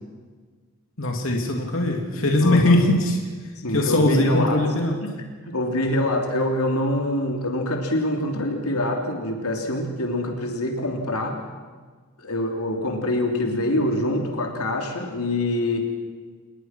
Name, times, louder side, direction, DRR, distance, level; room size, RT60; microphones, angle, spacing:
voice 1, 1.0-3.2 3.7-5.0, left 1 dB, 60° left, 1 dB, 3.3 m, -20 dB
voice 2, 2.4-2.8 3.6-4.6 5.0-5.1 5.5-11.4 12.2-15.9, left 1 dB, 80° left, 2 dB, 3.4 m, -25 dB
28.0 x 21.0 x 6.1 m, 1.5 s
head